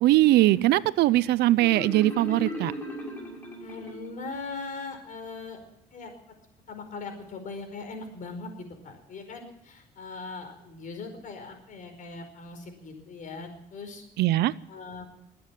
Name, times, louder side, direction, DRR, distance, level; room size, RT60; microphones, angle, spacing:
voice 1, 0.0-2.7 14.2-14.5, right 16 dB, 75° right, 19 dB, 0.6 m, -21 dB
Marimba xylophone, 1.6-4.3, equal, 10° left, 6.0 m, -37 dB
voice 2, 3.6-5.6 5.9-6.1 6.7-14.0 14.7-15.0, left 3 dB, 50° left, 6 dB, 4.9 m, -40 dB
22.0 x 8.7 x 7.5 m, 0.82 s
cardioid pair, 110°, 17 cm